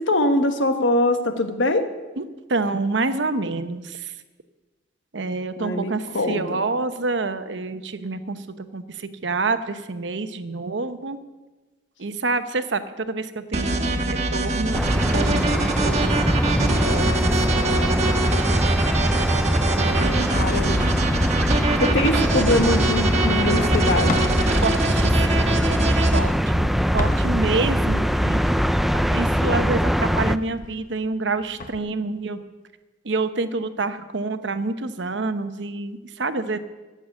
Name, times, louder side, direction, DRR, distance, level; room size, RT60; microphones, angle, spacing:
voice 1, 0.0-1.9 5.6-6.6 20.3-21.0 21.8-24.3, left 1 dB, 85° left, 7 dB, 1.4 m, -23 dB
voice 2, 2.5-3.8 5.1-8.4 8.7-8.8 9.2-11.2 12.0-12.8 13.1-16.3 16.6-18.1 19.7-20.3 24.6-28.4 29.1-32.4 33.0-36.6, right 3 dB, 70° right, 10 dB, 0.9 m, -27 dB
sound 1, 13.5-26.2, right 2 dB, 40° right, 1.3 m, -24 dB
sound 2, 14.7-30.4, equal, ahead, 0.3 m, -22 dB
sound 3, 16.2-24.4 25.2-27.7 28.2-31.8, left 3 dB, 45° left, 0.9 m, -39 dB
14.5 x 7.9 x 8.5 m, 1.2 s
head